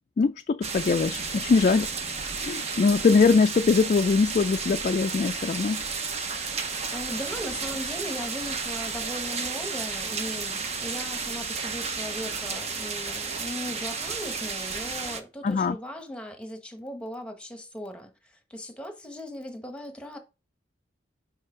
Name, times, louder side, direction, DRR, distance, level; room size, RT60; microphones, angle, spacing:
voice 1, 0.2-1.9 2.4-5.8 15.4-15.8, left 4 dB, 45° left, 0.3 m, -22 dB
sound 1, 0.6-15.2, right 5 dB, 40° right, 0.8 m, -32 dB
voice 2, 6.9-20.2, equal, 5° left, 1.1 m, -38 dB
5.6 x 5.3 x 3.8 m
head